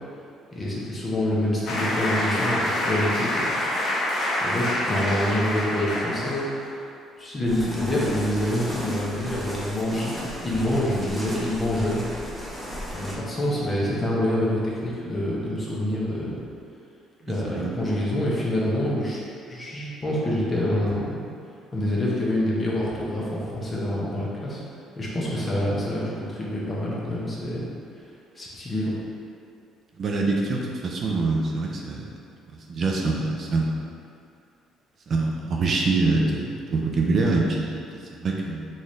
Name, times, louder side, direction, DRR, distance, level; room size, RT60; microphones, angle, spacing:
voice 1, 0.5-3.5 4.4-6.5 7.2-12.0 12.9-16.4 17.3-21.3 21.7-24.6 24.9-27.7 28.3-28.9, left 1 dB, 30° left, -6 dB, 0.9 m, -26 dB
sound 1, 1.7-6.7, left 1 dB, 55° left, 0.8 m, -26 dB
sound 2, 7.4-13.2, equal, 5° right, 0.8 m, -35 dB
voice 2, 30.0-32.1 32.7-33.8 35.1-38.7, right 3 dB, 50° right, -1 dB, 0.4 m, -25 dB
3.9 x 2.6 x 3.1 m, 2.5 s
cardioid pair, 90°, 0 cm